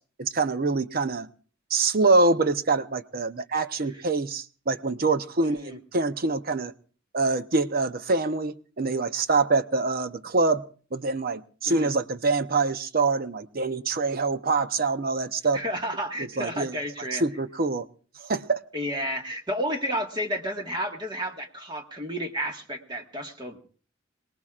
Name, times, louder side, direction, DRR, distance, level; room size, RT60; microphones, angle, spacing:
voice 1, 0.2-1.3 1.7-6.7 7.1-10.6 10.9-15.6 16.2-16.7 17.1-17.9 18.2-18.6, right 3 dB, 50° right, 0.7 m, -25 dB
voice 2, 5.4-5.8 11.7-11.9 15.5-17.2 18.7-23.6, equal, 25° right, 1.7 m, -31 dB
26.5 x 19.0 x 2.5 m
head